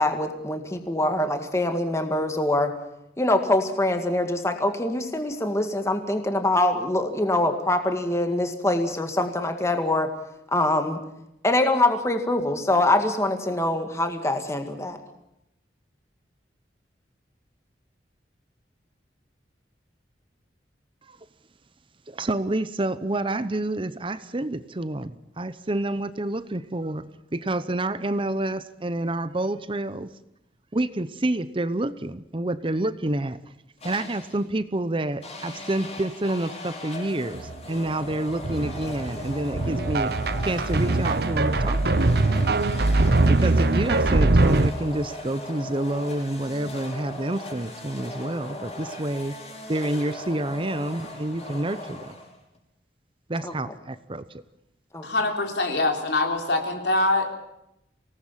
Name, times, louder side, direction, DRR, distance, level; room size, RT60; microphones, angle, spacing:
voice 1, 0.0-2.7 3.2-10.1 10.5-11.0 11.4-15.0 53.4-53.5 54.9-55.0, left 1 dB, 15° left, 6 dB, 1.9 m, -24 dB
voice 2, 22.1-30.1 30.7-33.4 33.8-40.1 40.4-42.1 43.3-49.3 49.7-52.2 53.3-54.4, right 1 dB, 30° right, 14 dB, 0.8 m, -28 dB
sound 1, 33.8-34.5 35.2-52.6, left 1 dB, 35° left, 6.0 m, -38 dB
sound 2, 37.4-37.6 37.9-44.7, right 2 dB, 60° right, 0.9 m, -22 dB
voice 3, 55.0-57.4, left 2 dB, 70° left, 3 dB, 3.9 m, -24 dB
25.0 x 18.5 x 7.4 m, 0.84 s
head